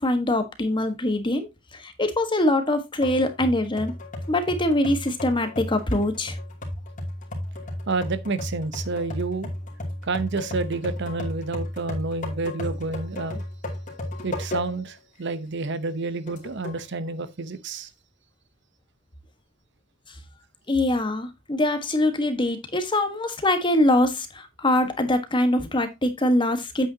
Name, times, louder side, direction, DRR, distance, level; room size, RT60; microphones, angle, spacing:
voice 1, 0.0-3.9 4.3-6.4 20.7-26.9, left 1 dB, 25° left, 1.4 m, -23 dB
sound 1, 3.0-14.9 15.4-15.5 16.3-16.8, left 1 dB, 40° left, 2.7 m, -34 dB
voice 2, 7.9-9.5 10.0-13.4 14.2-17.9, right 3 dB, 55° right, 0.8 m, -29 dB
8.7 x 8.5 x 2.8 m
head